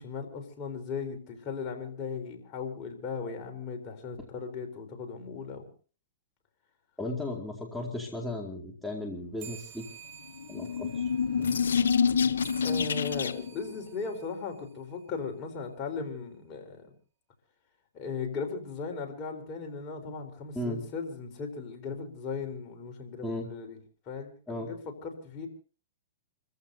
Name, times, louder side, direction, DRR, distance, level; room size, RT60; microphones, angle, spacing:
voice 1, 0.0-5.7 12.6-16.9 17.9-23.8 24.1-25.5, left 5 dB, 35° left, 3 dB, 4.1 m, -37 dB
voice 2, 7.0-9.8 10.5-11.0 11.3-11.6 20.5-20.8 23.2-23.5 24.5-24.7, left 1 dB, 5° left, -1 dB, 2.3 m, -35 dB
sound 1, 9.4-15.2, right 8 dB, 40° right, 4.2 m, -51 dB
sound 2, 10.4-13.6, left 6 dB, 85° left, 0.8 m, -27 dB
29.5 x 15.0 x 2.8 m, 0.38 s
hypercardioid pair, 130°, 0 cm